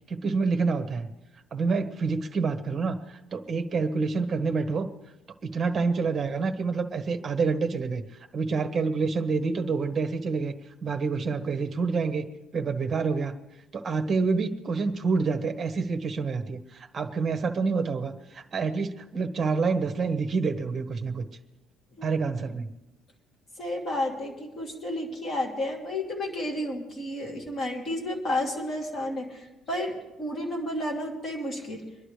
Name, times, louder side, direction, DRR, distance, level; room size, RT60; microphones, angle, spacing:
voice 1, 0.1-1.1 1.5-4.9 5.4-8.0 8.3-10.5 10.8-12.2 12.5-13.3 13.7-21.3 22.0-22.7, right 4 dB, 25° right, 5 dB, 1.3 m, -27 dB
voice 2, 23.6-31.8, left 1 dB, 30° left, -2 dB, 2.6 m, -31 dB
26.0 x 11.0 x 3.3 m, 1.0 s
cardioid pair, 165°, 0 cm